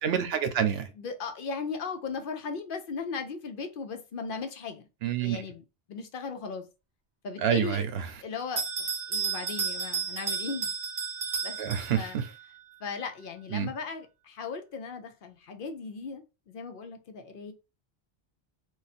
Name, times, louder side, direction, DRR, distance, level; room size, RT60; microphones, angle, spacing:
voice 1, 0.0-0.9 5.0-5.4 7.4-8.1 11.6-12.3 13.5-13.7, right 8 dB, 85° right, 0.9 m, -27 dB
voice 2, 1.0-4.9 5.2-6.7 7.2-7.8 8.2-10.7 11.4-11.6 11.9-12.2 12.8-17.5, left 5 dB, 65° left, 0.7 m, -37 dB
Bell, 8.6-12.3, right 6 dB, 60° right, 0.9 m, -32 dB
2.5 x 2.3 x 4.1 m
omnidirectional pair, 1.0 m